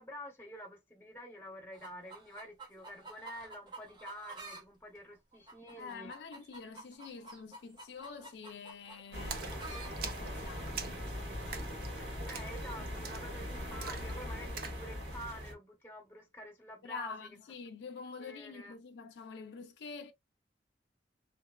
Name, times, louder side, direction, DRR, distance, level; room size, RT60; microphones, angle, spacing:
voice 1, 0.0-6.1 12.0-17.3 18.2-18.7, equal, 10° left, 0.8 m, -48 dB
sound 1, 1.7-4.6 4.9-10.1 10.9-11.0, right 3 dB, 25° right, 0.7 m, -50 dB
voice 2, 5.8-9.6 10.0-11.1 16.8-20.1, left 5 dB, 70° left, 0.3 m, -46 dB
sound 2, 9.1-15.5, equal, 85° right, 1.3 m, -41 dB
Splash splatter, 9.3-14.9, right 6 dB, 55° right, 0.3 m, -45 dB
2.8 x 2.0 x 2.2 m
head